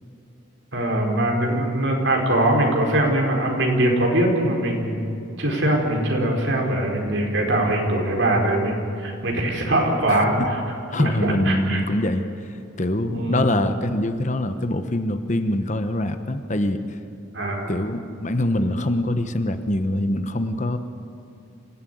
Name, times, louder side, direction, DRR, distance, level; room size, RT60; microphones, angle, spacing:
voice 1, 0.7-5.0 5.4-10.6 11.0-11.8 13.1-13.4 17.3-17.7, right 1 dB, 65° right, 0 dB, 4.7 m, -22 dB
voice 2, 10.1-10.5 10.9-12.3 12.8-17.0 17.7-20.8, left 1 dB, 35° left, 9 dB, 1.0 m, -24 dB
27.0 x 15.5 x 9.4 m, 2.6 s
head